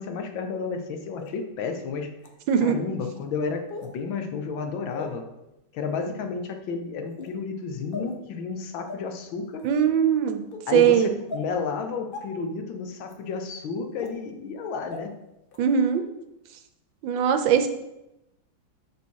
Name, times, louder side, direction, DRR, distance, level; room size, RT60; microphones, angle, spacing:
voice 1, 0.0-2.1 2.6-5.2 5.7-9.6 10.7-15.1, left 5 dB, 80° left, 6 dB, 1.6 m, -32 dB
sound 1, 1.2-1.3 2.2-2.3 3.7-3.9 4.9-5.1 5.9-6.1 7.1-7.3 7.9-8.1 8.9-9.0 9.6-9.8 10.5-10.6 11.3-11.4 12.1-12.2 13.1-13.2 14.0-14.1 14.9-15.0 15.5-15.6, left 3 dB, 50° left, 0.7 m, -37 dB
voice 2, 2.5-2.8 9.6-10.4 10.7-11.1 15.6-16.0 17.0-17.7, right 8 dB, 75° right, 8 dB, 1.4 m, -20 dB
6.4 x 5.5 x 4.6 m, 0.90 s
omnidirectional pair, 2.1 m